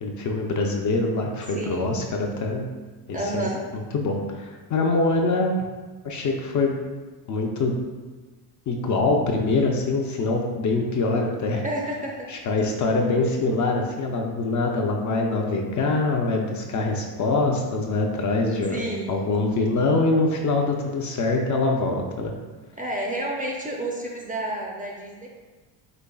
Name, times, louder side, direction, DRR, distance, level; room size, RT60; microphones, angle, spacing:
voice 1, 0.0-2.7 3.1-3.5 3.9-5.5 6.0-6.8 7.3-7.8 8.7-11.6 12.3-18.8 19.1-22.3, left 3 dB, 40° left, 1 dB, 0.5 m, -24 dB
voice 2, 1.5-1.9 3.1-3.6 11.6-12.3 18.7-19.2 22.7-25.3, right 1 dB, 15° right, -1 dB, 0.5 m, -30 dB
5.1 x 3.2 x 2.3 m, 1.3 s
cardioid pair, 105°, 49 cm